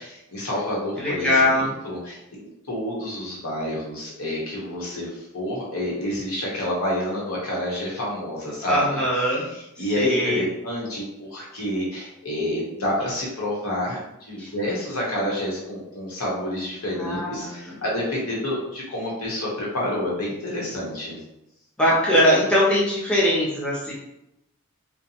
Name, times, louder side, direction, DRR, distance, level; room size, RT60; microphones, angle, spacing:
voice 1, 0.0-9.0 9.5-21.2, left 1 dB, 75° left, -4 dB, 0.9 m, -29 dB
voice 2, 1.0-1.7 8.7-9.5 9.8-10.4 14.4-14.5 16.9-17.7 21.8-23.9, equal, 5° left, -7 dB, 0.5 m, -21 dB
2.6 x 2.1 x 2.7 m, 0.86 s
head